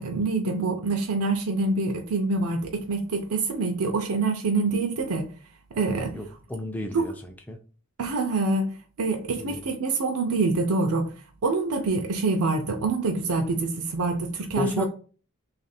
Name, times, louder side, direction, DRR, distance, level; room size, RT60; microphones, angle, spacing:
voice 1, 0.0-5.3 5.7-6.2 6.9-7.1 8.0-11.1 11.4-14.9, right 3 dB, 85° right, 0.5 m, -26 dB
voice 2, 6.1-7.1 7.5-7.6 9.4-9.6 14.6-14.9, left 1 dB, 5° left, 0.3 m, -31 dB
3.3 x 2.5 x 4.1 m
head